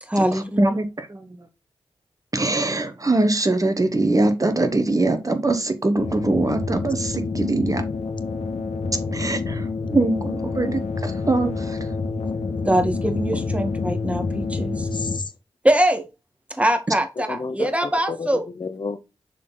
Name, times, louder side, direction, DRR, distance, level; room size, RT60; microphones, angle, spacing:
voice 1, 0.0-0.8 12.6-14.9 15.6-16.1 16.5-18.5, right 1 dB, 10° right, 1.5 m, -23 dB
voice 2, 0.6-1.4 2.3-7.8 9.1-11.8, right 2 dB, 30° right, 1.2 m, -22 dB
sound 1, 6.0-15.2, left 4 dB, 85° left, 1.5 m, -28 dB
voice 3, 14.6-15.3 17.3-18.3 18.6-19.0, left 4 dB, 45° left, 0.9 m, -31 dB
6.5 x 4.0 x 3.9 m
cardioid pair, 55°, 11 cm